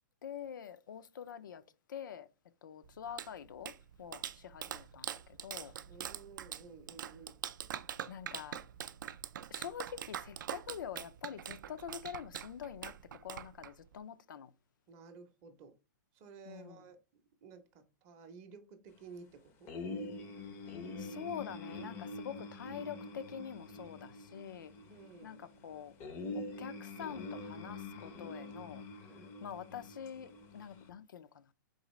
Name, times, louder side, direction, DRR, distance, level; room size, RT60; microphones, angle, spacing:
voice 1, 0.2-1.6 1.9-2.3 2.6-3.7 4.0-5.7 8.1-8.6 9.5-14.5 16.5-16.8 21.0-24.7 25.2-25.9 26.3-28.8 29.4-31.5, left 8 dB, 90° left, 0.4 m, -46 dB
Clapping, 2.8-14.0, right 10 dB, 80° right, 0.4 m, -44 dB
voice 2, 5.9-7.4 14.9-15.7 16.1-17.0 17.4-19.7 24.9-25.4 29.1-29.4, right 5 dB, 25° right, 0.6 m, -54 dB
sound 1, 19.7-30.9, left 2 dB, 20° left, 0.4 m, -45 dB
3.9 x 3.8 x 3.0 m
hypercardioid pair, 160°, 10 cm